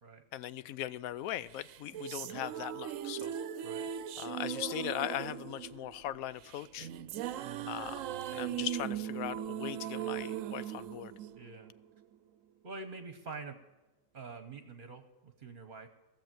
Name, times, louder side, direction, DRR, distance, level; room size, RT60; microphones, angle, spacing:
voice 1, 0.3-3.3 4.2-6.9 7.7-8.0 8.3-11.1, left 12 dB, 90° left, 16 dB, 1.0 m, -39 dB
sound 1, 1.6-12.0, right 10 dB, 75° right, 0.9 m, -39 dB
voice 2, 7.4-7.8 11.3-11.7 12.6-13.6 14.1-15.9, right 4 dB, 45° right, 8 dB, 1.0 m, -46 dB
15.5 x 7.1 x 7.5 m, 1.2 s
omnidirectional pair, 1.4 m